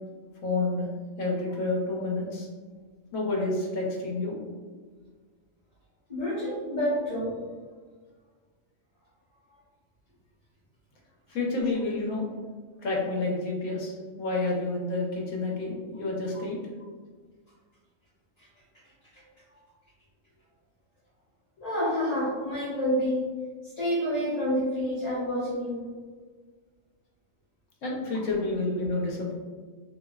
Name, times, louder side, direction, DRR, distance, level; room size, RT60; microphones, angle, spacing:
voice 1, 0.4-0.9 1.2-2.5 3.1-4.4 11.3-12.2 12.8-16.6 27.8-29.3, left 2 dB, 75° left, -2 dB, 1.1 m, -29 dB
voice 2, 6.1-7.4 21.6-23.2 23.8-25.9, equal, 35° left, -11 dB, 0.9 m, -28 dB
3.0 x 2.8 x 2.3 m, 1.5 s
omnidirectional pair, 1.4 m